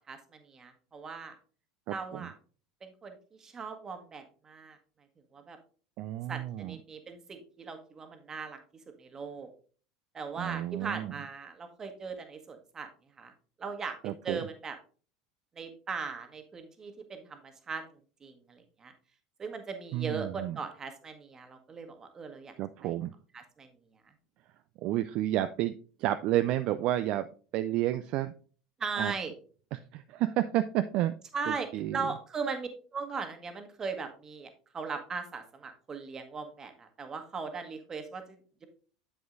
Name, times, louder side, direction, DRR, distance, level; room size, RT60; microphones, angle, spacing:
voice 1, 0.0-1.4 1.9-2.3 2.8-4.8 5.3-5.6 6.3-8.6 9.0-9.5 10.1-12.9 13.2-13.3 13.6-14.0 14.2-14.8 15.5-17.8 18.2-18.9 19.4-22.5 22.8-22.9 23.3-23.7 28.8-29.3 31.3-34.5 34.7-38.7, right 5 dB, 25° right, 7 dB, 1.4 m, -39 dB
voice 2, 6.0-6.8 10.4-11.1 14.0-14.4 19.9-20.6 22.6-23.1 24.8-25.7 26.0-27.3 27.5-28.3 29.0-29.1 29.7-31.1 31.5-32.1, right 14 dB, 50° right, 11 dB, 0.3 m, -30 dB
7.9 x 7.8 x 2.6 m, 0.40 s
figure-of-eight pair, 75°, 2 cm